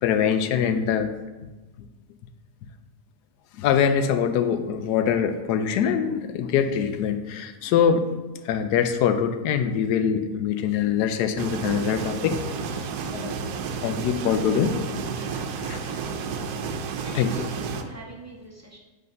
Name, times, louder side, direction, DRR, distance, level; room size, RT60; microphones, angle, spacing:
voice 1, 0.0-1.1 3.6-8.1 8.4-12.4 13.1-13.5 13.8-14.7 15.3-15.8 17.1-17.3, left 8 dB, 85° left, 9 dB, 1.1 m, -23 dB
sound 1, 11.4-17.8, right 5 dB, 80° right, 1.1 m, -31 dB
voice 2, 17.0-18.8, right 3 dB, 15° right, -3 dB, 0.6 m, -44 dB
5.3 x 4.1 x 5.3 m, 1.1 s
omnidirectional pair, 1.7 m